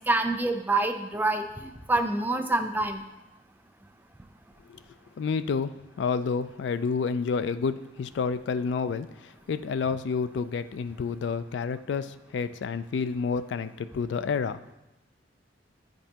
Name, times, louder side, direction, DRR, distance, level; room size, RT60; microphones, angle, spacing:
voice 1, 0.0-3.0, right 2 dB, 10° right, 5 dB, 0.4 m, -26 dB
voice 2, 5.2-14.6, left 5 dB, 75° left, 13 dB, 0.3 m, -29 dB
9.1 x 5.2 x 2.9 m, 0.96 s
head